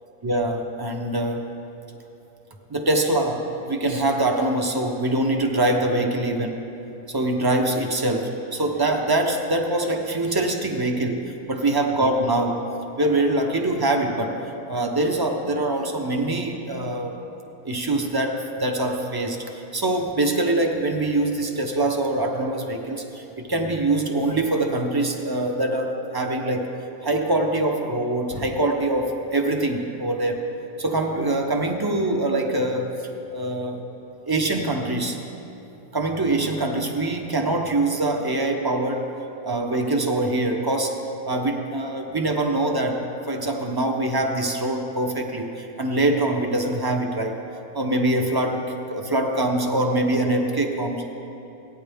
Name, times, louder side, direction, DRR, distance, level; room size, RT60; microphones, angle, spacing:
voice 1, 0.2-1.5 2.7-6.6 7.1-12.6 13.0-14.4 14.7-17.2 17.6-19.4 19.7-26.7 27.0-30.5 30.8-33.0 33.3-33.8 34.3-35.2 35.9-39.1 39.4-47.4 47.7-51.1, right 2 dB, 30° right, 3 dB, 0.4 m, -24 dB
16.5 x 9.4 x 3.5 m, 2.9 s
omnidirectional pair, 1.5 m